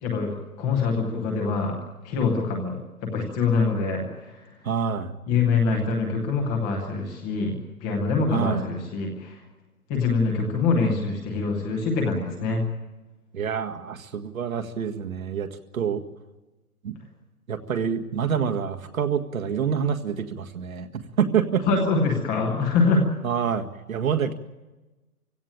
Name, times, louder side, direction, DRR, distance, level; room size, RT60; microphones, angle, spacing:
voice 1, 0.0-1.8 2.0-4.5 5.3-9.4 9.9-12.6 21.6-23.1, left 4 dB, 5° left, 1 dB, 0.7 m, -24 dB
voice 2, 4.6-5.1 8.3-8.6 13.3-16.0 16.8-16.9 17.5-21.7 23.2-24.3, right 7 dB, 65° right, 5 dB, 1.9 m, -27 dB
24.0 x 16.5 x 8.7 m, 1.1 s
hypercardioid pair, 165°, 44 cm